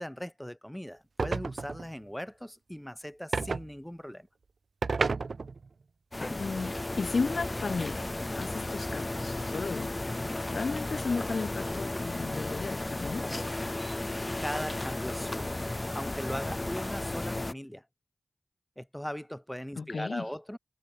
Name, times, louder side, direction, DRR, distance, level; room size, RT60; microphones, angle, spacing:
voice 1, 0.0-4.3 14.4-15.6 15.9-17.9 18.8-20.6, equal, 5° left, 0.4 m, -39 dB
sound 1, 1.2-1.9 3.3-3.7 4.8-5.7, right 4 dB, 60° right, 0.5 m, -31 dB
sound 2, 6.1-17.5, left 2 dB, 25° left, 0.8 m, -34 dB
voice 2, 6.3-8.1 8.4-10.0 10.5-13.3 19.8-20.3, left 4 dB, 60° left, 0.8 m, -34 dB
wide cardioid pair, 80°, 0 cm